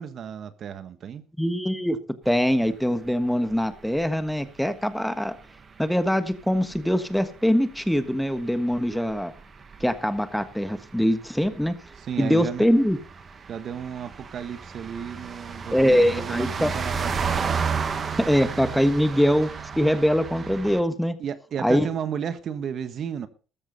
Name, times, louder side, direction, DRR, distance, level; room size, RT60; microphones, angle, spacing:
voice 1, 0.0-1.3 12.0-12.7 13.5-17.4 18.2-18.3 21.2-23.3, right 8 dB, 55° right, 1.3 m, -33 dB
voice 2, 1.4-2.0 2.2-5.4 5.8-9.3 9.8-11.7 12.2-13.0 15.7-16.7 18.2-19.5 19.8-21.1 21.6-21.9, equal, ahead, 1.4 m, -23 dB
sound 1, 2.2-20.8, right 5 dB, 35° right, 1.9 m, -34 dB
14.0 x 13.0 x 4.1 m
cardioid pair, 105°, 0 cm